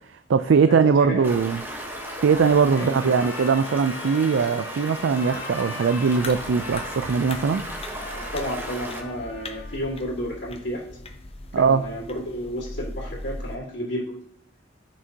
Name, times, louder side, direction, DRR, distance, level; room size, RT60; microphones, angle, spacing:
voice 1, 0.1-1.6 2.2-7.6 11.5-11.8, right 5 dB, 75° right, 11 dB, 0.4 m, -21 dB
voice 2, 0.7-1.5 2.8-3.0 8.3-10.8 11.5-14.2, equal, 65° left, -9 dB, 2.1 m, -32 dB
Stream, 1.2-9.0, right 1 dB, 10° right, 1.1 m, -36 dB
Trumpet, 1.3-10.1, left 3 dB, 90° left, 1.8 m, -40 dB
sound 1, 6.2-13.6, left 2 dB, 30° left, 0.6 m, -39 dB
14.0 x 6.1 x 2.8 m, 0.70 s
head